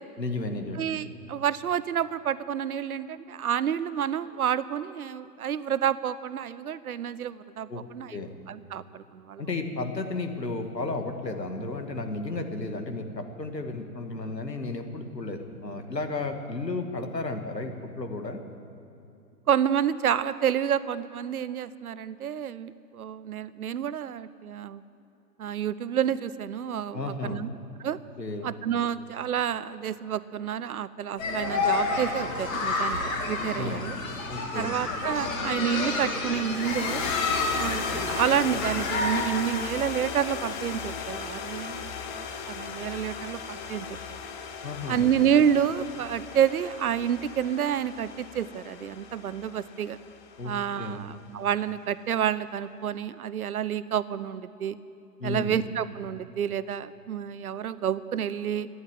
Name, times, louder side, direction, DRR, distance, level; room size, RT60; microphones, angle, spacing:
voice 1, 0.2-0.8 7.7-7.8 8.1-8.3 9.4-18.4 26.9-27.5 28.2-28.5 33.5-33.9 34.3-34.8 44.6-45.1 50.4-50.5 50.8-51.1 55.2-55.6, left 2 dB, 90° left, 5 dB, 1.9 m, -33 dB
voice 2, 0.8-9.4 19.5-24.8 25.4-27.5 27.8-28.0 28.4-34.0 34.5-37.1 37.5-44.0 44.9-50.0 50.4-54.8 55.2-58.7, right 9 dB, 65° right, 16 dB, 0.7 m, -29 dB
sound 1, 31.2-39.2, left 3 dB, 55° left, 3.3 m, -29 dB
sound 2, 36.4-50.9, left 6 dB, 30° left, 1.0 m, -37 dB
12.5 x 10.5 x 9.3 m, 2.7 s
figure-of-eight pair, 125°, 48 cm